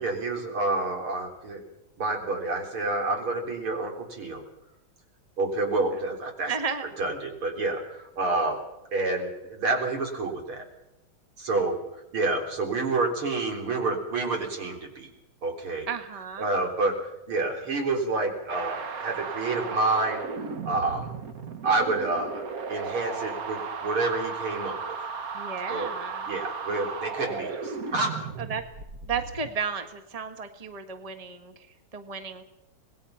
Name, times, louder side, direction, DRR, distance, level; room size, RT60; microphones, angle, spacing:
voice 1, 0.0-1.6 2.0-4.4 5.4-6.5 7.0-8.6 8.9-10.6 11.4-15.1 15.4-15.9 16.4-21.1 21.6-25.0 25.7-25.9 26.3-28.2, right 3 dB, 90° right, 2 dB, 4.5 m, -28 dB
voice 2, 6.4-6.9 15.9-16.5 25.3-26.3 28.4-28.6 29.1-31.5 31.9-32.4, right 6 dB, 20° right, 7 dB, 1.5 m, -33 dB
sound 1, 18.5-29.5, right 5 dB, 50° right, 1.5 m, -35 dB
26.0 x 20.0 x 5.7 m, 0.88 s
omnidirectional pair, 2.3 m